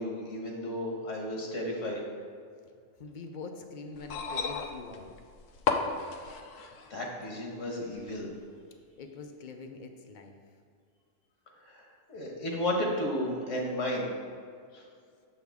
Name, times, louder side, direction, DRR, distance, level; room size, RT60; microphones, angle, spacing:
voice 1, 0.0-2.0 6.6-8.3 11.6-14.1 14.7-14.8, left 1 dB, 70° left, -1 dB, 1.5 m, -33 dB
voice 2, 3.0-5.1 9.0-10.4, left 4 dB, 50° left, 5 dB, 0.6 m, -44 dB
sound 1, 4.0-6.9 8.0-8.1, left 5 dB, 90° left, 1.0 m, -33 dB
6.9 x 6.5 x 3.5 m, 2.2 s
omnidirectional pair, 1.3 m